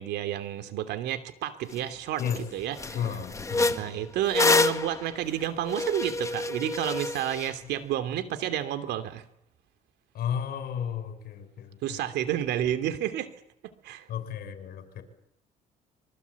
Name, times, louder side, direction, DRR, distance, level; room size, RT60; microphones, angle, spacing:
voice 1, 0.0-2.2 2.5-2.9 3.7-9.2 11.8-13.3 13.8-14.1, right 11 dB, 80° right, 9 dB, 3.0 m, -30 dB
sound 1, 1.7-1.8 2.2-2.4 2.7-7.5, left 3 dB, 20° left, 1.6 m, -28 dB
voice 2, 2.9-4.0 10.1-12.0 14.1-15.0, left 8 dB, 65° left, 10 dB, 6.2 m, -33 dB
26.0 x 24.0 x 8.5 m, 0.76 s
cardioid pair, 110°, 17 cm